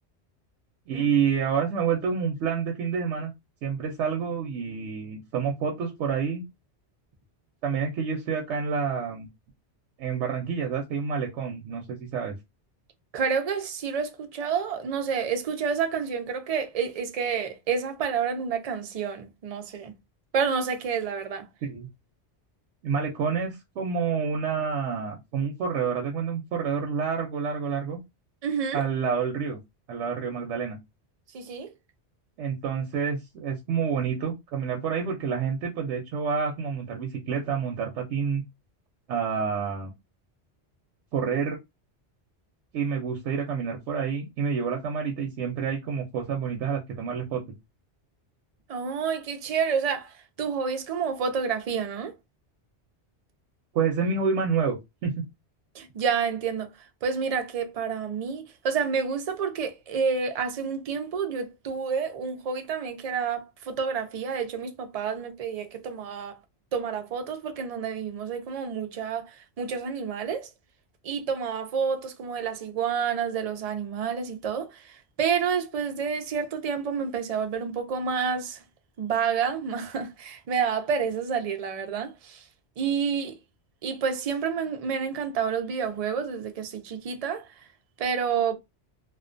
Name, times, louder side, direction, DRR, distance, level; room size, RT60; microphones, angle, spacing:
voice 1, 0.9-3.3 3.6-6.4 7.6-9.3 10.0-12.3 21.6-21.9 22.8-28.0 28.7-29.6 29.9-30.8 32.4-38.4 39.1-39.9 41.1-41.6 42.7-47.4 53.7-54.8 55.0-55.2, right 6 dB, 90° right, 0.9 m, -28 dB
voice 2, 13.1-19.9 20.3-21.5 28.4-28.8 31.3-31.7 48.7-52.1 55.7-56.7 57.0-66.4 66.7-70.5 71.0-78.6 79.0-82.4 82.8-83.4 83.8-87.6 88.0-88.5, right 6 dB, 60° right, 0.4 m, -29 dB
2.4 x 2.2 x 2.4 m
omnidirectional pair, 1.2 m